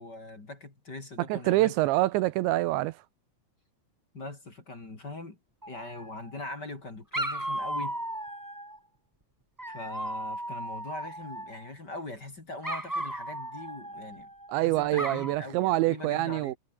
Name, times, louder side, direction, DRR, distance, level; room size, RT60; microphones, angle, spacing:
voice 1, 0.0-1.7 4.1-5.4 5.7-8.0 9.7-14.3 14.6-16.6, left 2 dB, 25° left, 3.6 m, -41 dB
voice 2, 1.3-3.0 14.5-16.6, right 17 dB, 80° right, 2.8 m, -26 dB
Dog, 5.6-6.4 7.1-8.8 9.6-11.7 12.6-14.5 14.9-15.4, right 1 dB, 10° right, 0.8 m, -36 dB
omnidirectional pair, 5.6 m